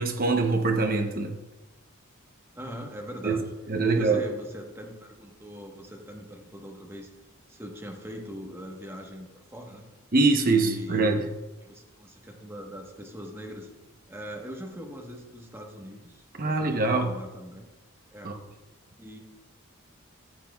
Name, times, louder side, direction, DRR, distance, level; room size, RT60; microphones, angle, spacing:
voice 1, 0.0-1.4 3.2-3.4 3.7-4.2 10.1-11.2 16.4-17.1 18.2-18.3, right 3 dB, 40° right, 4 dB, 0.8 m, -23 dB
voice 2, 2.5-3.4 3.9-7.1 7.5-9.9 10.5-11.2 11.6-13.7 14.1-17.7 18.1-18.3 19.0-19.2, equal, 10° right, 0 dB, 1.1 m, -41 dB
13.5 x 7.6 x 2.3 m, 1.1 s
head